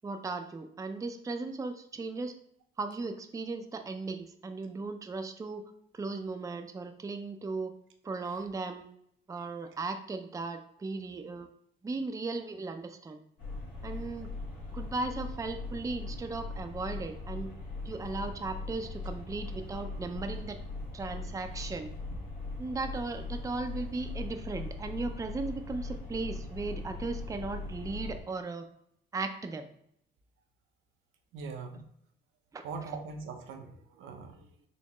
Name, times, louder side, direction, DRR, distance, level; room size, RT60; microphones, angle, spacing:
voice 1, 0.0-2.3 2.8-5.6 5.9-7.7 8.0-8.9 9.3-11.5 11.8-13.2 13.8-14.3 14.7-17.5 17.8-20.6 20.9-21.9 22.6-28.7 29.1-29.7 32.5-32.6, right 3 dB, 15° right, 7 dB, 0.4 m, -37 dB
sound 1, 13.4-28.2, left 3 dB, 85° left, 1.6 m, -40 dB
voice 2, 31.3-31.8 32.6-34.7, right 4 dB, 80° right, 5 dB, 0.7 m, -42 dB
4.2 x 2.9 x 3.0 m, 0.72 s
cardioid pair, 90°, 20 cm